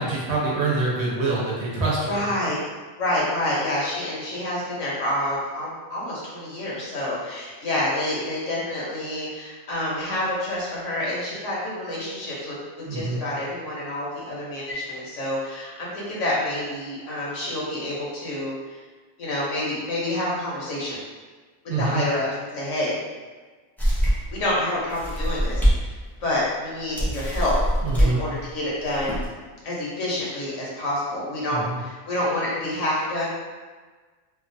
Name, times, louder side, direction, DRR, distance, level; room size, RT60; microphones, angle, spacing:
voice 1, 0.0-2.3 12.8-13.2 21.7-22.0 27.8-28.2 31.5-31.8, right 3 dB, 65° right, -5 dB, 1.0 m, -25 dB
voice 2, 2.1-2.6 3.0-12.5 12.9-18.5 19.2-21.0 21.8-22.3 22.5-22.9 24.3-25.9 26.2-27.6 28.0-29.1 29.6-33.2, left 1 dB, 80° left, -5 dB, 1.2 m, -28 dB
sound 1, 23.8-24.4 24.9-25.8 26.2-26.3 27.0-28.1 28.8-29.3, equal, 5° left, 0.3 m, -22 dB
2.8 x 2.2 x 2.6 m, 1.4 s
omnidirectional pair, 1.3 m